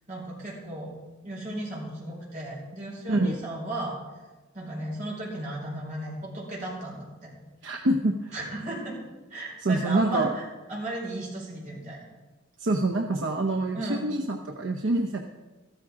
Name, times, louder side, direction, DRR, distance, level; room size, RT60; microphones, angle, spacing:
voice 1, 0.1-0.9 1.2-4.0 4.5-7.3 8.3-9.0 9.3-12.1 13.7-14.0, right 1 dB, 40° right, -4 dB, 5.0 m, -35 dB
voice 2, 7.6-8.3 9.6-10.3 12.6-15.2, right 2 dB, 70° right, 2 dB, 0.8 m, -26 dB
14.0 x 13.5 x 3.7 m, 1.2 s
head